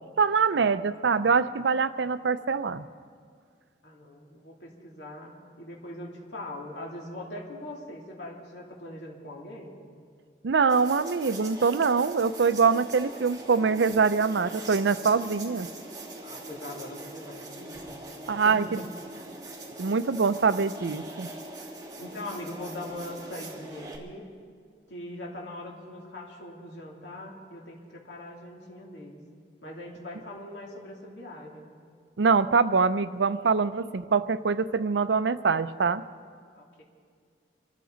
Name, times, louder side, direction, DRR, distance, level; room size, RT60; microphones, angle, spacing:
voice 1, 0.2-2.8 10.4-15.7 18.3-18.8 19.8-21.3 32.2-36.0, right 5 dB, 80° right, 14 dB, 0.5 m, -24 dB
voice 2, 3.8-9.8 16.2-18.0 18.4-18.8 22.0-24.3 24.9-29.2 29.6-31.6 36.5-36.8, left 1 dB, 80° left, -2 dB, 3.0 m, -41 dB
sound 1, 10.7-24.0, right 2 dB, 20° right, 2.1 m, -42 dB
25.5 x 13.5 x 4.0 m, 2.1 s
head